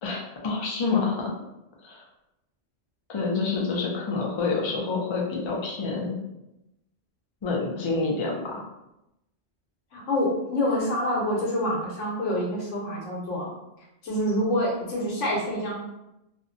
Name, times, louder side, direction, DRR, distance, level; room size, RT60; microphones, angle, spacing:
voice 1, 0.0-1.4 1.8-2.0 3.1-6.2 7.4-8.6, left 4 dB, 50° left, -1 dB, 0.3 m, -27 dB
voice 2, 9.9-13.5 14.0-15.7, left 1 dB, 85° left, -2 dB, 1.1 m, -26 dB
2.6 x 2.1 x 2.5 m, 0.90 s
omnidirectional pair, 1.2 m